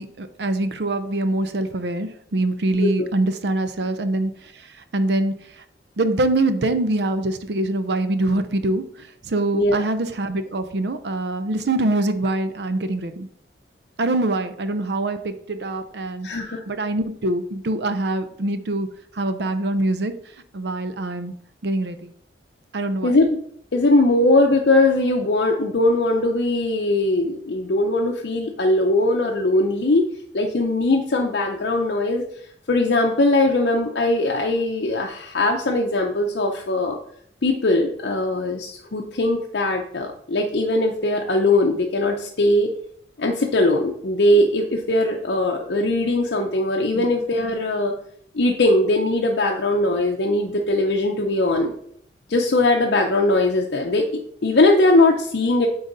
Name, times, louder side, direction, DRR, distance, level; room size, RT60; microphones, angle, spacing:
voice 1, 0.0-5.6 6.0-13.3 14.0-16.3 16.7-18.9 19.1-20.1 20.5-21.3 21.6-22.1 22.7-23.1 46.9-47.0, right 2 dB, 70° right, 10 dB, 0.6 m, -24 dB
voice 2, 2.7-3.1 9.5-9.8 16.2-16.6 23.0-23.3 23.7-30.1 30.3-32.2 32.7-37.0 37.4-42.7 43.2-47.9 48.3-51.7 52.3-55.7, left 2 dB, 70° left, 1 dB, 0.6 m, -20 dB
8.9 x 3.9 x 4.0 m, 0.67 s
head